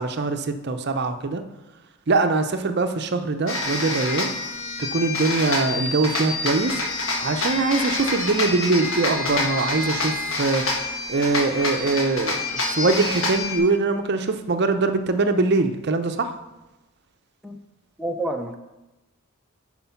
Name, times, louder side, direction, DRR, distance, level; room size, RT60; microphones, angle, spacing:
voice 1, 0.0-1.4 2.1-4.3 4.8-6.8 7.2-10.7 11.1-16.3, right 3 dB, 50° right, 8 dB, 0.6 m, -23 dB
sound 1, 3.5-13.6, left 2 dB, 70° left, 1.5 m, -27 dB
voice 2, 18.0-18.6, right 1 dB, ahead, 1 dB, 0.4 m, -28 dB
9.7 x 4.5 x 5.7 m, 1.0 s
head